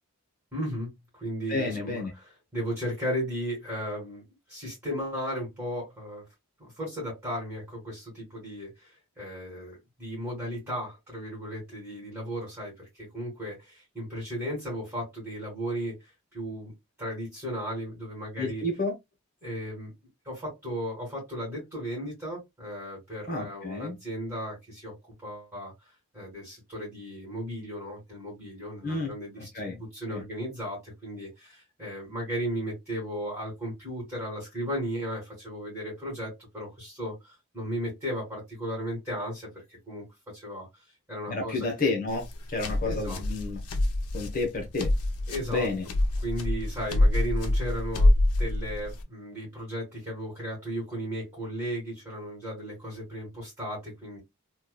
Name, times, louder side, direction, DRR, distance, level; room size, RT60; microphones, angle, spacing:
voice 1, 0.5-0.9 1.2-2.1 2.5-4.2 4.5-6.2 6.8-8.0 8.3-8.7 9.2-9.7 10.0-10.9 11.1-12.7 13.1-13.5 14.0-15.9 16.3-16.7 17.0-18.6 19.4-19.9 20.6-24.5 24.8-24.9 25.2-25.7 26.2-29.4 29.9-30.8 31.0-31.3 31.8-37.1 37.5-39.3 39.9-40.0 40.4-40.6 41.1-41.9 42.9-43.2 45.3-45.7 46.2-48.1 48.4-54.2, equal, 10° right, 1.7 m, -35 dB
voice 2, 1.5-2.1 18.4-18.9 23.3-24.0 28.8-29.1 29.4-29.8 30.1-30.2 41.3-43.6 44.1-44.9 45.5-45.9, left 3 dB, 40° left, 0.9 m, -30 dB
sound 1, 42.1-49.0, left 1 dB, 90° left, 0.6 m, -26 dB
3.0 x 2.3 x 2.3 m
head